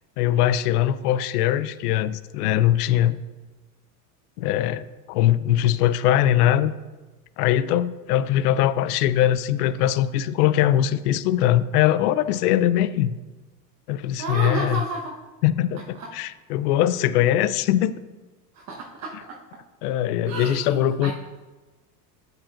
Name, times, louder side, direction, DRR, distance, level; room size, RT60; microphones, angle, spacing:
voice 1, 0.2-3.2 4.4-6.7 7.4-13.2 13.9-14.8 15.4-17.9 19.8-21.1, left 12 dB, 75° left, 15 dB, 0.5 m, -21 dB
voice 2, 14.2-15.2 15.9-16.1 18.5-19.4 20.3-21.1, right 3 dB, 35° right, -2 dB, 1.2 m, -31 dB
8.4 x 7.9 x 2.5 m, 1.2 s
hypercardioid pair, 85°, 47 cm